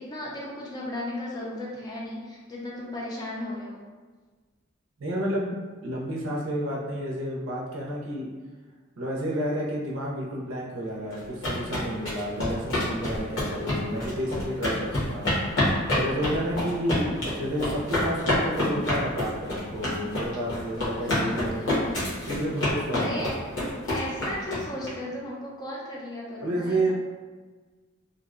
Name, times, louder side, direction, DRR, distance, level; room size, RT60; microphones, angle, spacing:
voice 1, 0.0-3.8 21.0-21.8 22.9-23.5 23.8-26.9, left 1 dB, 20° left, -4 dB, 0.4 m, -36 dB
voice 2, 5.0-8.3 9.0-21.7 22.2-23.3 26.4-26.9, right 1 dB, 85° right, -3 dB, 0.5 m, -31 dB
sound 1, 11.1-24.9, left 1 dB, 60° left, 0.9 m, -27 dB
2.5 x 2.0 x 2.4 m, 1.4 s
head